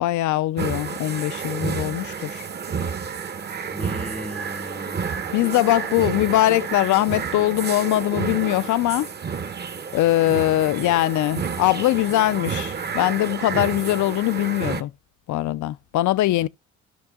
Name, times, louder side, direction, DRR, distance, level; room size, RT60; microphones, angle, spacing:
voice 1, 0.0-2.4 5.3-9.1 9.9-14.9 15.3-16.5, left 15 dB, 75° left, 0.5 m, -21 dB
sound 1, 0.6-14.8, right 6 dB, 35° right, 0.7 m, -30 dB
voice 2, 3.7-5.3, left 1 dB, 5° left, 0.5 m, -36 dB
16.5 x 6.0 x 2.3 m
cardioid pair, 90°, 30 cm